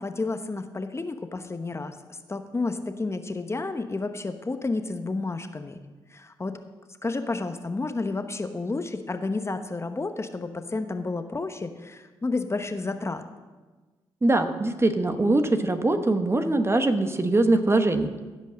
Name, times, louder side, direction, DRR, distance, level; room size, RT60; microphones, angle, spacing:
voice 1, 0.0-2.0 2.3-5.8 6.1-6.6 7.0-13.2, left 3 dB, 25° left, 8 dB, 0.9 m, -31 dB
voice 2, 14.2-18.1, right 2 dB, 25° right, 8 dB, 1.1 m, -22 dB
16.0 x 5.4 x 6.3 m, 1.3 s
supercardioid pair, 50°, 10 cm